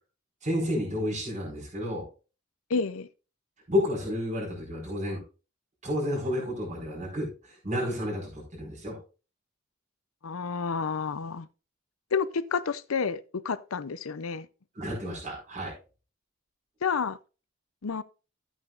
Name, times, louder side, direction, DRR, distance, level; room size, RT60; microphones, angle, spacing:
voice 1, 0.4-2.0 3.7-5.2 5.8-9.0 14.7-15.7, left 1 dB, 35° right, 4.9 m, -31 dB
voice 2, 2.7-3.1 10.2-11.5 12.1-14.5 16.8-17.2 17.8-18.0, left 5 dB, 85° left, 0.6 m, -30 dB
13.0 x 8.9 x 2.5 m
head